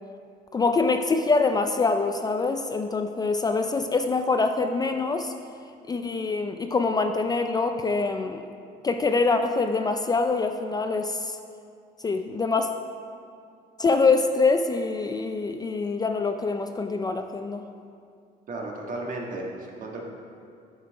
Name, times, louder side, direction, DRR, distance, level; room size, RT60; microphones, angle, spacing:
voice 1, 0.5-5.3 5.9-8.4 8.8-11.4 12.0-12.7 13.8-17.6, left 4 dB, 25° left, 6 dB, 0.4 m, -24 dB
voice 2, 18.5-20.0, right 2 dB, 50° right, -1 dB, 1.5 m, -34 dB
9.4 x 5.7 x 4.7 m, 2.3 s
cardioid pair, 110°, 17 cm